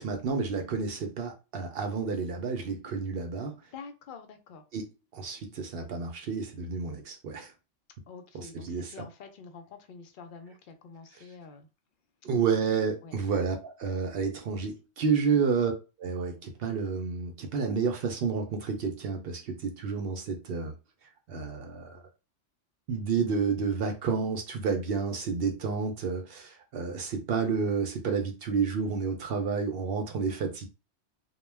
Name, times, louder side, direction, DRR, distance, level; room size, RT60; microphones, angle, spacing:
voice 1, 0.0-3.5 4.7-7.5 8.3-8.9 12.2-15.7 16.0-20.7 21.3-22.0 22.9-30.7, right 5 dB, 60° right, 0.7 m, -30 dB
voice 2, 3.7-4.6 8.1-11.7 13.0-13.1 15.3-15.5, left 5 dB, 60° left, 0.6 m, -47 dB
2.2 x 2.1 x 3.2 m
omnidirectional pair, 1.2 m